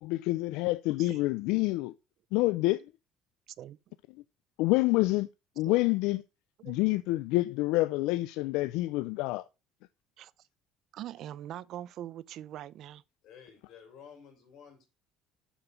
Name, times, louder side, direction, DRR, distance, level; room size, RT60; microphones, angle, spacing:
voice 1, 0.0-1.9 2.3-2.8 4.6-5.3 5.6-6.2 6.6-9.4, left 20 dB, 85° left, 0.4 m, -27 dB
voice 2, 6.6-7.0 10.2-10.3 10.9-13.0, right 12 dB, 55° right, 0.5 m, -42 dB
voice 3, 13.2-14.9, left 7 dB, 60° left, 4.9 m, -52 dB
7.1 x 6.9 x 5.5 m
cardioid pair, 135°, 0 cm